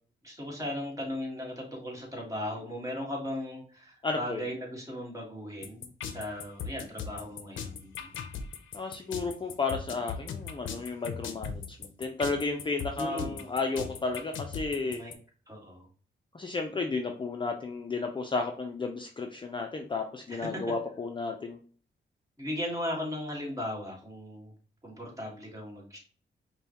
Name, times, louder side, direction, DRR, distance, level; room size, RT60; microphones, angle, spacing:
voice 1, 0.2-8.1 12.9-13.4 14.8-15.1 15.5-15.9 20.3-20.6 22.4-24.5 24.8-26.0, left 1 dB, 15° right, -2 dB, 1.7 m, -37 dB
voice 2, 4.0-4.4 8.7-15.0 16.3-21.6, left 3 dB, 25° left, 3 dB, 0.5 m, -33 dB
sound 1, 5.6-15.1, left 7 dB, 90° left, 0.5 m, -38 dB
5.2 x 2.3 x 2.9 m, 0.42 s
cardioid pair, 90°, 19 cm